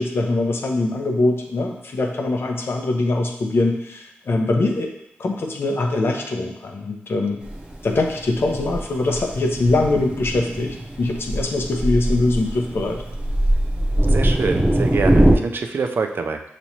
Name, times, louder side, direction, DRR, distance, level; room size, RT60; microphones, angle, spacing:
voice 1, 0.0-4.9 5.2-7.4 7.8-13.0, left 2 dB, 60° left, 2 dB, 0.7 m, -22 dB
Thunder, 7.4-15.3, right 1 dB, 20° right, 0.8 m, -21 dB
voice 2, 14.1-16.4, right 4 dB, 55° right, 5 dB, 0.4 m, -25 dB
5.8 x 3.1 x 2.8 m, 0.81 s
cardioid pair, 55°, 4 cm